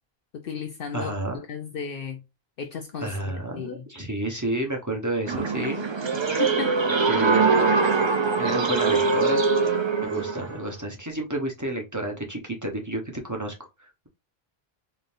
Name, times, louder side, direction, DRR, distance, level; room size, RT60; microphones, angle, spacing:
voice 1, 0.3-1.1 1.5-2.2 2.6-3.8 6.4-6.8 7.1-7.2, left 6 dB, 65° left, 0.8 m, -34 dB
voice 2, 0.9-1.4 3.0-5.9 7.1-7.7 8.3-9.4 10.0-13.5 13.8-14.1, right 1 dB, 20° right, 1.0 m, -30 dB
sound 1, 5.3-10.6, right 4 dB, 35° right, 0.5 m, -22 dB
3.9 x 3.4 x 2.6 m
omnidirectional pair, 1.1 m